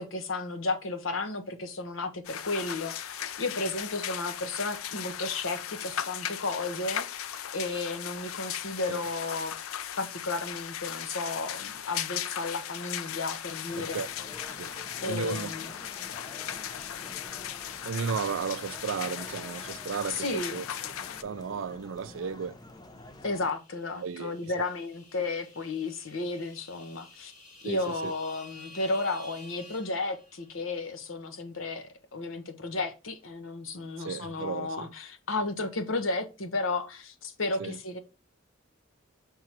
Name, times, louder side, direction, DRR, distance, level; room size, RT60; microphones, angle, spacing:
voice 1, 0.0-7.2 7.5-9.5 10.0-14.0 15.0-15.7 20.1-20.6 23.2-27.3 27.6-38.0, left 3 dB, 70° left, 1.0 m, -33 dB
sound 1, 2.2-21.2, left 10 dB, 90° left, 0.5 m, -37 dB
sound 2, 13.7-23.5, left 2 dB, 20° left, 0.6 m, -48 dB
voice 2, 14.6-15.5 17.8-20.6 21.2-22.6 24.0-24.7 27.6-28.1 34.0-34.9 37.6-37.8, right 6 dB, 70° right, 0.4 m, -34 dB
sound 3, 22.7-30.7, left 2 dB, 40° left, 1.6 m, -53 dB
5.9 x 3.7 x 4.4 m
head